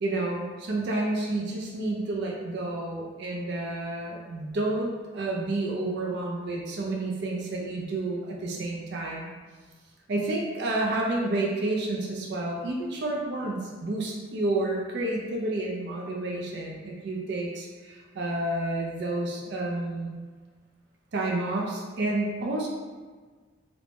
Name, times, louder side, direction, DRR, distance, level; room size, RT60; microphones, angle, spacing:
voice 1, 0.0-9.3 10.1-20.1 21.1-22.7, right 2 dB, 55° right, -2 dB, 0.4 m, -30 dB
2.5 x 2.1 x 3.2 m, 1.4 s
head